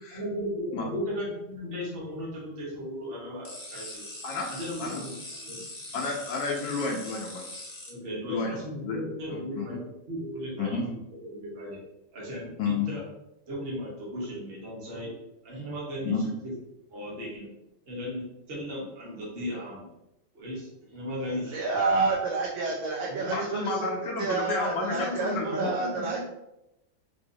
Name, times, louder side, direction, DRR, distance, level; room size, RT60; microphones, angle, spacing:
voice 1, 0.1-4.1 4.5-5.6 7.9-11.8 12.1-13.0 13.5-15.1 15.4-16.1 16.4-16.5 16.9-17.5 17.9-19.9 20.3-21.6 23.0-24.3 24.8-26.2, equal, 35° right, -5 dB, 1.1 m, -36 dB
sound 1, 3.4-7.9, left 2 dB, 50° left, 0.6 m, -42 dB
voice 2, 5.9-7.5 8.2-9.0 9.3-9.8 10.6-10.9 12.6-12.9 16.0-16.2 23.3-25.7, left 4 dB, 75° left, -1 dB, 1.1 m, -31 dB
voice 3, 21.3-23.9 24.2-26.2, right 3 dB, 80° right, -3 dB, 1.3 m, -29 dB
3.8 x 2.7 x 2.7 m, 0.89 s
omnidirectional pair, 2.2 m